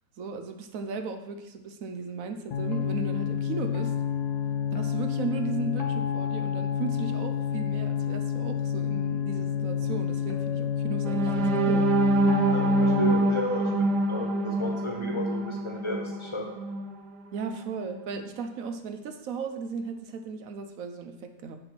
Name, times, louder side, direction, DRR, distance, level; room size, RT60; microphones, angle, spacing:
voice 1, 0.2-3.9 4.7-11.9 17.3-21.6, right 5 dB, 65° right, 7 dB, 1.0 m, -36 dB
sound 1, 2.5-13.2, left 8 dB, 75° left, 1.5 m, -29 dB
sound 2, 11.0-17.0 17.4-17.6 18.0-18.2, right 2 dB, 85° right, 1.3 m, -25 dB
voice 2, 12.4-16.5, left 2 dB, 20° left, 0 dB, 1.4 m, -33 dB
6.7 x 5.9 x 6.0 m, 1.0 s
omnidirectional pair, 1.7 m